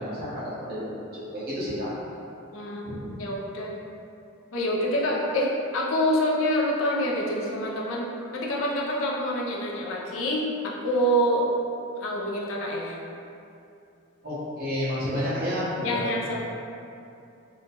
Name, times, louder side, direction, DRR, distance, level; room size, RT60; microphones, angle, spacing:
voice 1, 0.0-1.9 2.8-3.2 14.2-16.4, equal, 50° right, -10 dB, 0.9 m, -31 dB
voice 2, 2.5-3.7 4.5-8.1 8.3-11.4 12.0-13.0 15.8-16.4, equal, 75° left, -3 dB, 0.4 m, -26 dB
2.8 x 2.2 x 2.8 m, 2.6 s
head